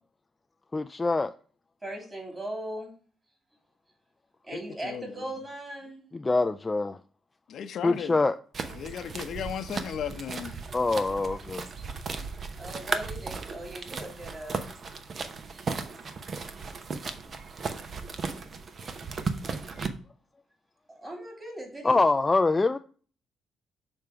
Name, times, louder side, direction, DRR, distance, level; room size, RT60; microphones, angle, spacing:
voice 1, 0.7-1.3 6.1-7.0 7.8-8.4 10.7-11.7 21.8-22.8, left 3 dB, 20° left, 0.3 m, -24 dB
voice 2, 1.8-3.0 4.4-6.1 12.6-14.7 20.9-22.0, right 1 dB, 20° right, 2.8 m, -39 dB
voice 3, 4.5-5.2 7.5-8.2 8.7-10.6, left 8 dB, 65° left, 0.7 m, -36 dB
sound 1, 8.5-19.9, right 4 dB, 45° right, 0.8 m, -36 dB
6.6 x 3.6 x 5.7 m
cardioid pair, 90°, 0 cm